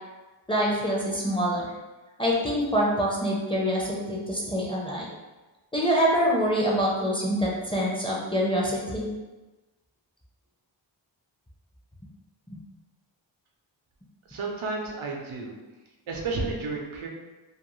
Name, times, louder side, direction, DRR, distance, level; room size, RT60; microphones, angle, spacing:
voice 1, 0.5-1.7 2.2-5.1 5.7-9.1 12.5-12.6, equal, 10° left, -5 dB, 0.5 m, -25 dB
voice 2, 14.3-15.6 16.1-17.1, right 3 dB, 90° right, -1 dB, 0.6 m, -32 dB
2.4 x 2.2 x 3.0 m, 1.2 s
wide cardioid pair, 85°, 47 cm